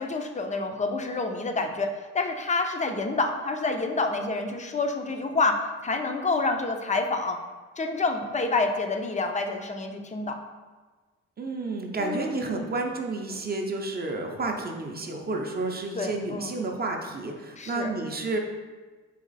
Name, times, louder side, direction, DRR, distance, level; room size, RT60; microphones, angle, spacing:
voice 1, 0.0-7.4 7.8-10.4 12.0-12.7 15.9-16.6 17.6-17.9, left 3 dB, 25° left, 5 dB, 0.5 m, -28 dB
voice 2, 11.4-18.4, right 3 dB, 30° right, 2 dB, 0.6 m, -31 dB
4.1 x 2.9 x 4.0 m, 1.3 s
cardioid pair, 90°, 30 cm